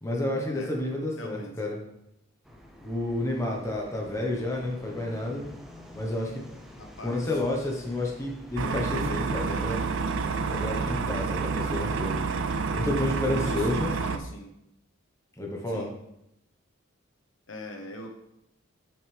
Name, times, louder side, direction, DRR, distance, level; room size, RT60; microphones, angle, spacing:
voice 1, 0.0-1.8 2.8-5.4 5.9-6.4 7.0-9.8 10.5-12.1 12.7-13.9 15.4-15.9, left 1 dB, 15° left, -1 dB, 1.2 m, -30 dB
voice 2, 1.2-1.5 6.8-7.2 13.4-14.5 15.7-15.9 17.5-18.1, left 1 dB, 70° left, 3 dB, 1.1 m, -41 dB
sound 1, 2.4-10.9, left 1 dB, ahead, 0.7 m, -47 dB
sound 2, 8.6-14.2, right 4 dB, 65° right, 0.5 m, -29 dB
7.9 x 6.3 x 3.5 m, 0.81 s
head